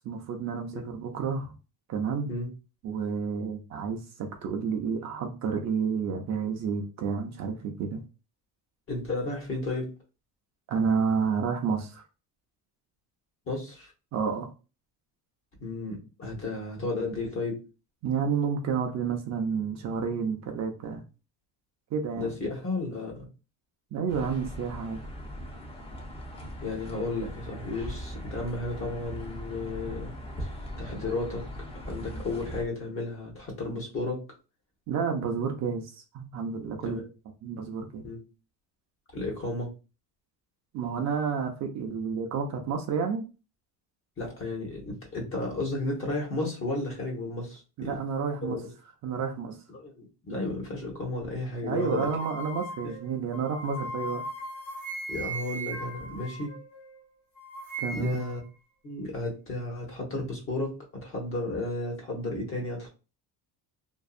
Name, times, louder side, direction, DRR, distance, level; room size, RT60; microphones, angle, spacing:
voice 1, 0.0-1.6 1.9-2.3 2.8-8.0 10.7-12.0 14.1-14.5 18.0-21.0 21.9-22.3 23.9-25.0 34.9-35.9 36.1-37.0 37.4-38.0 40.7-43.2 47.8-48.6 49.0-49.6 51.6-54.3 57.8-58.2, right 6 dB, 45° right, 3 dB, 0.5 m, -30 dB
voice 2, 8.9-9.9 13.5-13.9 15.6-17.6 22.2-23.2 26.6-30.1 30.4-30.5 30.8-31.4 31.9-34.2 36.8-37.1 38.0-38.2 39.1-39.7 44.2-48.0 48.4-48.7 49.7-52.1 55.1-56.5 57.9-58.4 58.8-62.9, left 2 dB, 35° left, 0 dB, 1.0 m, -33 dB
sound 1, 24.1-32.6, equal, 15° left, 0.5 m, -40 dB
sound 2, 51.8-57.0 57.4-58.4, right 1 dB, 50° left, 1.3 m, -38 dB
2.6 x 2.3 x 2.3 m, 0.32 s
cardioid pair, 150°, 39 cm